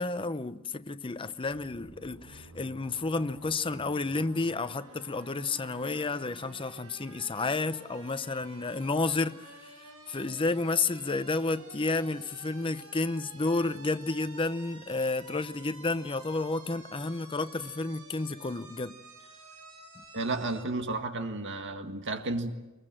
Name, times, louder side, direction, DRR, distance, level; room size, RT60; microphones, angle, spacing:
voice 1, 0.0-9.5 10.1-19.0, left 3 dB, 25° left, 0.7 m, -31 dB
sound 1, 1.5-20.7, right 2 dB, 85° right, 7.2 m, -51 dB
voice 2, 20.1-22.5, right 2 dB, 55° right, 1.8 m, -32 dB
22.5 x 22.0 x 7.6 m
head